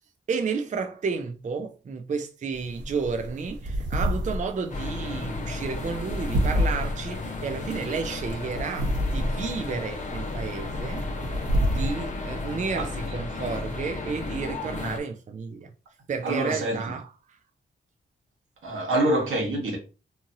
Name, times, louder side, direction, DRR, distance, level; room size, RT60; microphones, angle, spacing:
voice 1, 0.3-11.0 11.6-15.7 16.1-17.1, right 5 dB, 40° right, 0.4 m, -32 dB
sound 1, 2.5-13.1, equal, 60° right, 1.0 m, -30 dB
sound 2, 4.7-15.0, left 3 dB, 40° left, 0.7 m, -34 dB
voice 2, 16.2-17.0 18.6-19.8, right 1 dB, 85° right, 1.1 m, -26 dB
2.7 x 2.6 x 2.6 m
cardioid pair, 50°, 20 cm